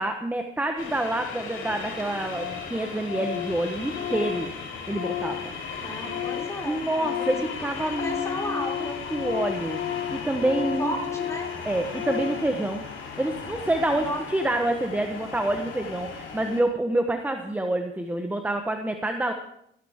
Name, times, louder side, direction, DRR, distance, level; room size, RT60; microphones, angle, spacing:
voice 1, 0.0-4.5 4.9-5.5 6.6-10.9 11.6-12.8 13.2-19.3, right 1 dB, 10° right, 5 dB, 1.1 m, -27 dB
sound 1, 0.8-16.6, left 4 dB, 80° left, 3.3 m, -37 dB
Organ, 1.4-1.5 1.7-1.8 2.0-2.1 2.3-2.7 3.0-6.6 6.9-12.5, left 11 dB, 50° left, 0.7 m, -33 dB
voice 2, 5.8-7.4 7.8-9.0 10.8-11.5 14.0-14.2, left 1 dB, 15° left, 0 dB, 4.6 m, -34 dB
16.5 x 12.0 x 3.7 m, 0.73 s
cardioid pair, 90°, 20 cm